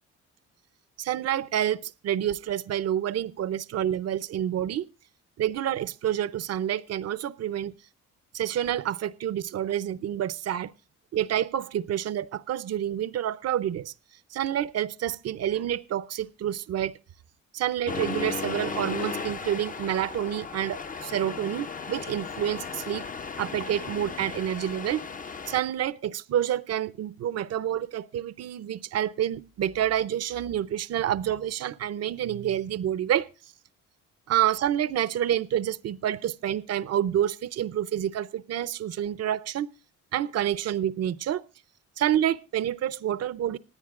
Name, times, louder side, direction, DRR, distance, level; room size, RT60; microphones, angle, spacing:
voice 1, 1.0-4.9 5.4-7.7 8.3-10.7 11.1-13.9 14.3-17.0 17.5-23.1 23.4-25.0 25.5-33.3 34.3-39.7 40.1-41.4 42.0-43.6, right 11 dB, 55° right, 16 dB, 0.7 m, -28 dB
Accelerating revving vroom, 17.9-25.6, left 5 dB, 30° left, 0.6 m, -35 dB
26.0 x 9.8 x 2.5 m, 0.31 s
cardioid pair, 90°, 30 cm